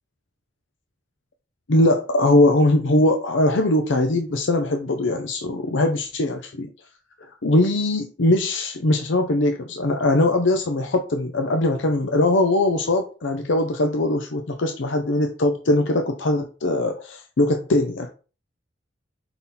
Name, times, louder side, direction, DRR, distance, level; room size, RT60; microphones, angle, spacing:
voice 1, 1.7-6.7 7.4-18.1, left 1 dB, 80° left, 5 dB, 0.7 m, -21 dB
5.7 x 3.9 x 4.2 m, 0.35 s
head